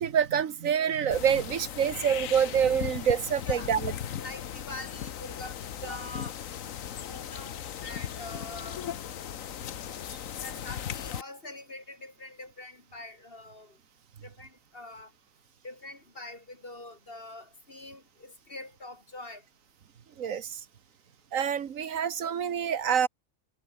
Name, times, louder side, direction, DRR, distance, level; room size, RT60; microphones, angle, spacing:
voice 1, 0.0-3.9 20.2-20.6 21.3-23.1, right 8 dB, 80° right, 1.6 m, -26 dB
sound 1, 1.1-11.2, left 9 dB, 80° left, 1.4 m, -37 dB
voice 2, 4.2-6.4 7.1-8.8 10.4-13.8 14.2-15.1 15.6-19.4, left 2 dB, 45° left, 4.5 m, -44 dB
omnidirectional pair, 1.4 m